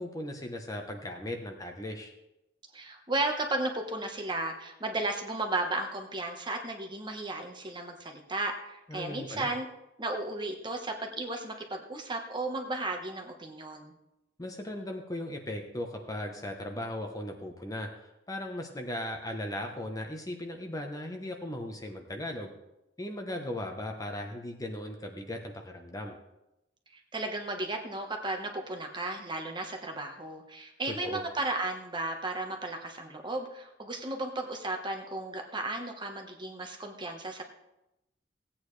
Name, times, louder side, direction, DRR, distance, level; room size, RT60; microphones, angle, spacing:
voice 1, 0.0-2.1 8.9-9.5 14.4-22.5 23.0-26.2 31.0-31.2, left 1 dB, 20° left, 3 dB, 1.0 m, -37 dB
voice 2, 2.7-9.6 10.0-13.9 26.9-37.4, right 2 dB, 25° right, 3 dB, 1.2 m, -34 dB
16.5 x 8.7 x 3.3 m, 0.91 s
head